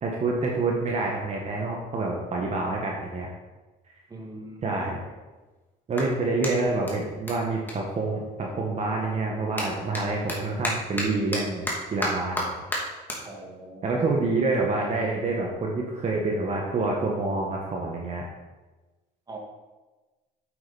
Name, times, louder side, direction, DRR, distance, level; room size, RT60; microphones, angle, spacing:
voice 1, 0.0-3.3 4.6-5.0 5.9-12.6 13.8-18.2, right 3 dB, 40° right, -1 dB, 1.6 m, -27 dB
Clapping, 3.8-3.9 4.6-8.7 9.0-15.6, equal, 10° left, 2.5 m, -35 dB
voice 2, 4.1-4.8 13.2-14.1 19.3-19.4, right 2 dB, 25° right, 0 dB, 2.0 m, -41 dB
8.6 x 8.2 x 4.3 m, 1.2 s
cardioid pair, 110°, 17 cm